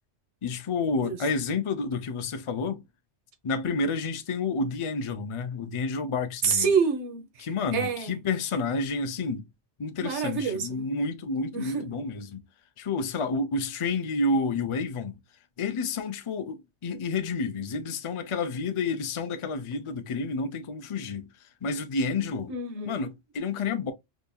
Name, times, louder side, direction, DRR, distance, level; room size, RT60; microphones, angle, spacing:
voice 1, 0.4-2.8 3.4-6.7 7.4-9.4 9.8-12.4 12.8-15.2 15.6-21.3 21.6-22.5 22.8-23.9, left 3 dB, 40° left, 0.5 m, -30 dB
voice 2, 6.4-8.1 10.0-10.8 11.5-11.9 22.5-23.0, right 5 dB, 85° right, 1.2 m, -28 dB
5.1 x 2.7 x 2.2 m
omnidirectional pair, 1.2 m